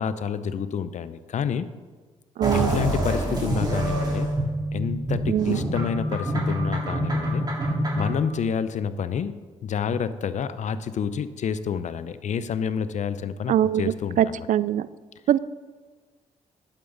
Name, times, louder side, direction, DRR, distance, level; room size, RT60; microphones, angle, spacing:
voice 1, 0.0-1.7 2.7-4.3 4.7-7.4 7.9-9.3 9.6-14.4, left 7 dB, 60° left, 14 dB, 0.6 m, -28 dB
sound 1, 2.4-8.2, right 1 dB, 30° right, 3.7 m, -26 dB
voice 2, 2.4-2.8 5.3-5.7 13.5-14.9 15.3-15.4, right 11 dB, 65° right, 17 dB, 0.4 m, -23 dB
11.5 x 9.0 x 3.9 m, 1.4 s
supercardioid pair, 55°, 14 cm